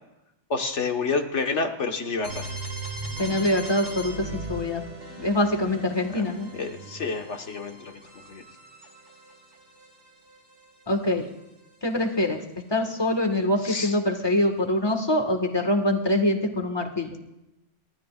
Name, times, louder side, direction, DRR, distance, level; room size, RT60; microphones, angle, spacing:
voice 1, 0.5-2.5 6.1-6.2 6.5-8.0 8.3-8.4 13.6-13.9, left 4 dB, 75° left, 4 dB, 1.7 m, -29 dB
sound 1, 2.2-12.0, right 2 dB, 80° right, 4.0 m, -40 dB
voice 2, 3.2-4.8 5.2-6.5 10.9-11.2 11.8-12.4 12.7-17.2, left 1 dB, 20° left, 4 dB, 1.7 m, -24 dB
28.5 x 13.0 x 2.5 m, 0.90 s
omnidirectional pair, 1.2 m